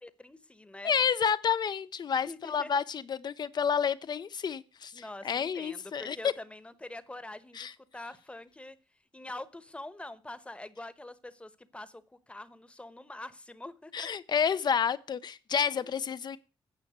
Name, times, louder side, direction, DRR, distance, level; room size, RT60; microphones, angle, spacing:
voice 1, 0.0-0.9 2.3-2.7 4.9-7.7 7.9-8.8 9.1-14.1 15.8-15.9, left 2 dB, 15° left, 1.1 m, -45 dB
voice 2, 0.8-6.3 7.6-7.7 13.9-16.4, left 7 dB, 55° left, 0.7 m, -30 dB
9.5 x 5.8 x 8.1 m
cardioid pair, 85°, 9 cm